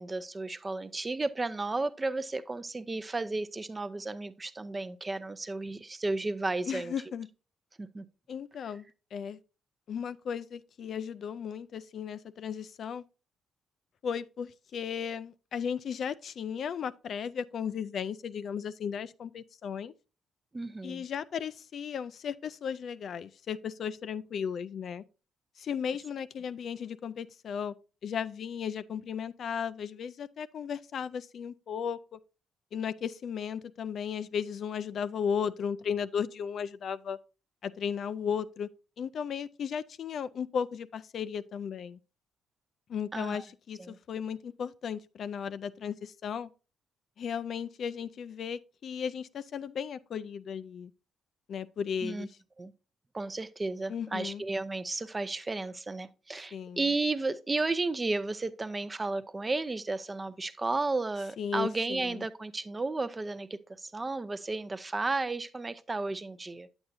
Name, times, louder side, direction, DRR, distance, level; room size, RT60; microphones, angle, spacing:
voice 1, 0.0-6.9 7.8-8.0 20.5-21.0 43.1-43.4 43.8-44.0 52.0-52.3 52.6-52.7 53.1-66.7, right 3 dB, 25° right, 0.5 m, -33 dB
voice 2, 6.7-7.3 8.3-8.8 9.1-9.4 9.9-13.0 14.0-19.9 20.8-25.0 25.6-27.7 28.0-32.2 32.7-37.2 37.6-38.7 39.0-42.0 42.9-46.5 47.2-50.9 51.5-52.3 53.9-54.4 56.5-56.8 61.4-62.2, left 7 dB, 60° left, 0.3 m, -35 dB
8.5 x 7.9 x 2.6 m
cardioid pair, 90°, 0 cm